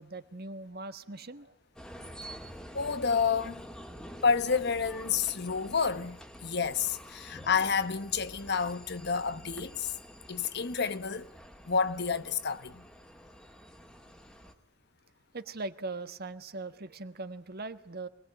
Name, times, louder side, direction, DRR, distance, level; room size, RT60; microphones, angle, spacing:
voice 1, 0.0-1.5 7.2-7.3 15.3-18.1, right 3 dB, 50° right, 1.5 m, -40 dB
sound 1, 1.8-14.5, equal, 5° left, 2.1 m, -48 dB
voice 2, 2.7-3.6 4.2-9.9 10.3-11.3 11.7-12.8, left 5 dB, 55° left, 1.0 m, -29 dB
25.5 x 20.5 x 8.9 m
head